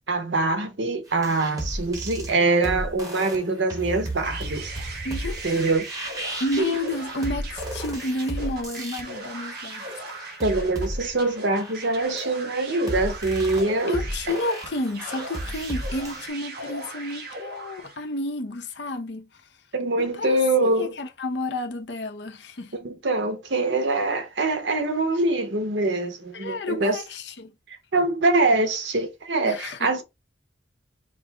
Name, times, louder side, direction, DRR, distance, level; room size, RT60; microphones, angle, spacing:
voice 1, 0.1-4.7 5.4-5.9 6.6-6.7 10.4-14.0 19.7-20.9 22.8-27.0 27.7-30.0, right 2 dB, 80° right, 1.0 m, -24 dB
sound 1, 1.1-16.3, right 1 dB, 20° right, 1.1 m, -34 dB
sound 2, 4.2-18.1, right 2 dB, 60° right, 1.3 m, -38 dB
voice 2, 5.0-5.7 6.4-9.9 13.9-19.4 20.0-20.4 20.6-22.7 26.3-27.5 29.4-29.9, left 2 dB, 70° left, 0.8 m, -31 dB
5.1 x 2.1 x 3.4 m
head